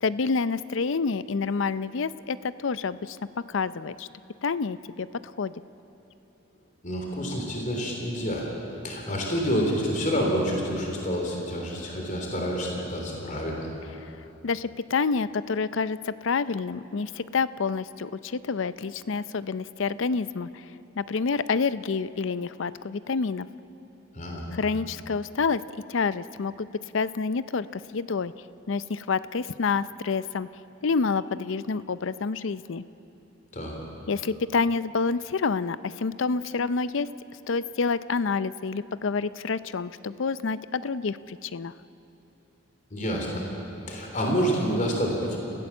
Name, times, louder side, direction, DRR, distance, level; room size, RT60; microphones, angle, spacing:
voice 1, 0.0-3.2 3.5-4.1 4.4-5.1 5.4-5.5 14.4-20.6 21.0-23.5 24.5-25.6 25.9-26.7 26.9-28.3 28.7-30.5 30.8-32.8 34.1-37.1 37.5-41.7, left 4 dB, 70° left, 16 dB, 0.5 m, -28 dB
voice 2, 6.8-8.5 8.8-13.7 24.1-24.5 33.5-33.7 42.9-43.5 43.9-45.4, equal, 40° left, 0 dB, 3.4 m, -28 dB
29.5 x 15.5 x 7.2 m, 3.0 s
head